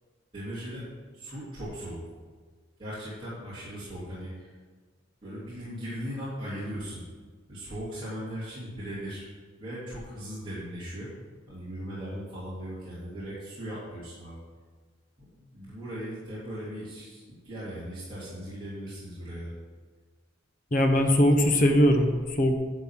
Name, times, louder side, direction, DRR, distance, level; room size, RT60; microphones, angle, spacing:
voice 1, 0.3-0.9 1.1-2.1 2.8-4.5 5.2-7.0 7.5-9.3 9.6-11.1 11.5-14.4 15.2-19.5, equal, 25° right, -12 dB, 3.1 m, -38 dB
voice 2, 20.7-22.5, equal, 40° left, 4 dB, 1.0 m, -21 dB
11.0 x 4.1 x 7.5 m, 1.5 s
head